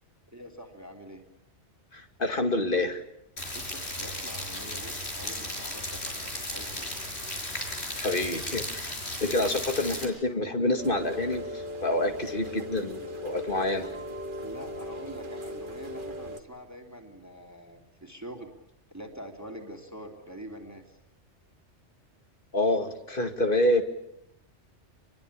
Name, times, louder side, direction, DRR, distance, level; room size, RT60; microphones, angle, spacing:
voice 1, 0.3-1.2 3.5-6.9 14.4-18.5 18.9-21.0, equal, 15° right, 2 dB, 3.1 m, -45 dB
voice 2, 1.9-3.0 8.0-8.9 9.2-13.9 22.5-23.8, left 1 dB, 45° left, 6 dB, 2.5 m, -27 dB
Rain, 3.4-10.0, left 1 dB, 65° left, 5.9 m, -35 dB
Rain 2, 10.8-16.4, left 1 dB, 45° right, 1.9 m, -38 dB
26.5 x 22.5 x 8.6 m, 0.78 s
omnidirectional pair, 1.2 m